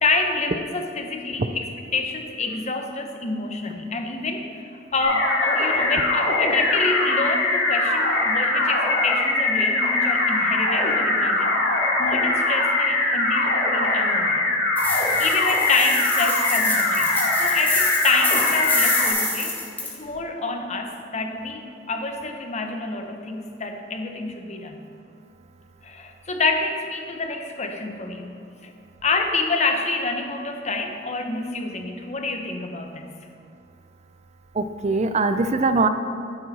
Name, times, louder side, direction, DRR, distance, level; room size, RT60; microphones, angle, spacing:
voice 1, 0.0-1.6 1.9-11.5 12.0-14.5 14.9-19.6 19.8-24.9 25.8-28.4 28.6-28.7 29.0-33.2, left 3 dB, 35° left, 4 dB, 1.0 m, -27 dB
sound 1, 5.0-19.1, left 2 dB, 80° left, 2.2 m, -22 dB
sound 2, 14.8-19.9, left 2 dB, 10° left, 1.8 m, -27 dB
voice 2, 34.5-35.9, right 3 dB, 35° right, 9 dB, 0.5 m, -21 dB
14.5 x 9.4 x 4.2 m, 2.5 s
head